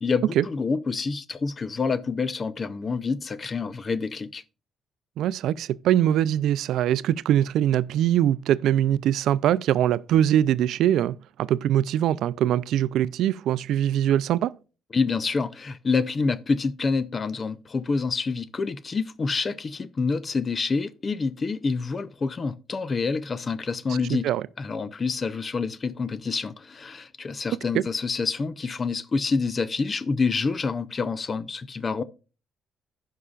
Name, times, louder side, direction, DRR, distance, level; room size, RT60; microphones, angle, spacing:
voice 1, 0.0-4.4 14.9-24.3 24.6-32.0, left 4 dB, 30° left, 0.6 m, -27 dB
voice 2, 5.2-14.5 24.1-24.4 27.7-27.8, right 11 dB, 80° right, 0.3 m, -22 dB
16.0 x 5.6 x 2.4 m
cardioid pair, 115°, 0 cm